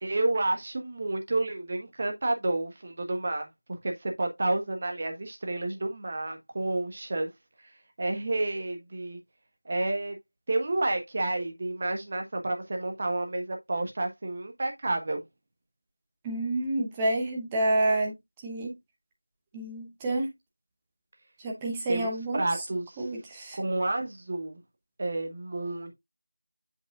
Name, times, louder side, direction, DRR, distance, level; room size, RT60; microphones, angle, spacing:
voice 1, 0.0-7.3 8.0-9.2 9.6-10.1 10.5-15.2 21.9-23.0 23.5-24.6 25.0-25.9, right 2 dB, 25° right, 1.2 m, -30 dB
voice 2, 16.2-18.1 18.4-18.7 19.5-20.3 21.4-22.4 23.0-23.6, right 2 dB, 10° right, 0.9 m, -28 dB
7.9 x 5.3 x 2.4 m
figure-of-eight pair, 175°, 0 cm